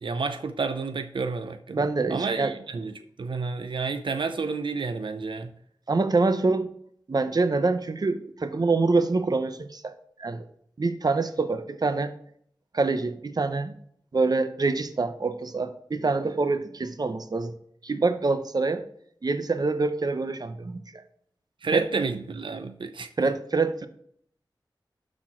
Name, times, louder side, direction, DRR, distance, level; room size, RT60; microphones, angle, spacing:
voice 1, 0.0-2.9 3.2-5.5 21.6-23.1, right 4 dB, 90° right, 0.6 m, -30 dB
voice 2, 1.7-2.5 5.9-6.7 7.1-9.9 10.2-10.5 10.8-12.1 12.7-13.8 14.1-17.5 17.8-18.8 19.2-21.0 21.7-21.8 23.2-23.9, right 3 dB, 50° right, 0.7 m, -25 dB
12.0 x 4.4 x 4.4 m
wide cardioid pair, 80°, 8 cm